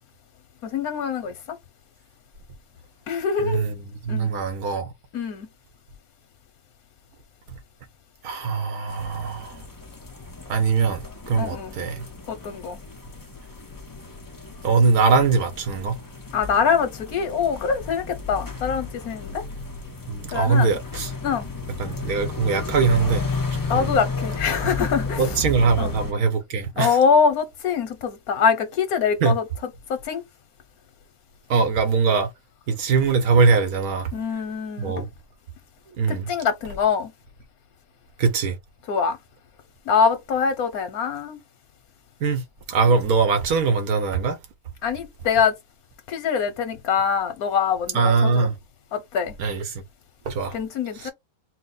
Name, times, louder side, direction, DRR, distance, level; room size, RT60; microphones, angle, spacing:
voice 1, 0.6-1.6 3.1-3.6 4.1-4.3 5.1-5.5 11.4-11.7 12.3-12.8 16.3-19.4 20.3-20.7 21.2-21.5 23.7-25.4 25.8-25.9 26.8-29.4 29.9-30.2 34.1-35.1 36.1-37.1 38.9-39.2 39.9-41.4 44.8-45.5 46.1-48.5 48.9-49.4 50.5-51.1, left 6 dB, 85° left, 1.4 m, -24 dB
voice 2, 3.4-4.9 8.2-9.6 10.5-12.1 14.6-16.0 20.1-21.1 21.8-23.2 23.7-24.0 24.6-24.7 25.2-27.0 29.2-29.3 31.5-32.3 32.7-34.1 34.8-35.1 36.0-36.3 38.2-38.6 42.2-44.4 47.9-48.5 49.4-49.6 50.3-50.5 51.0-51.1, right 5 dB, 80° right, 1.5 m, -22 dB
sound 1, 8.9-26.1, left 3 dB, 20° left, 0.6 m, -33 dB
4.3 x 2.2 x 3.9 m
omnidirectional pair, 1.5 m